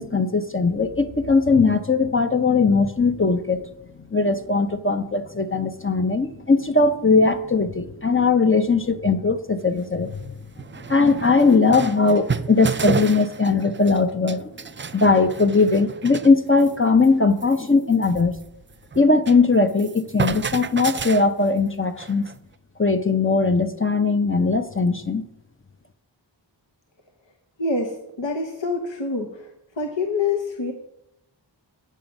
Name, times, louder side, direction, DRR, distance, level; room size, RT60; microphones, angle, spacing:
voice 1, 0.0-3.6 4.1-10.4 10.9-14.5 14.9-18.4 19.0-22.3 22.8-25.2, left 4 dB, 30° left, 7 dB, 0.7 m, -19 dB
sound 1, 9.6-9.7 10.2-10.3 10.6-14.0 14.3-16.3 16.6-16.8 17.0-17.1 17.4-19.4 19.7-22.4, right 5 dB, 30° right, 0.4 m, -31 dB
voice 2, 27.6-29.5 29.8-30.7, left 3 dB, 70° left, 3 dB, 1.1 m, -26 dB
8.9 x 7.4 x 5.2 m, 0.85 s
wide cardioid pair, 45°, 45 cm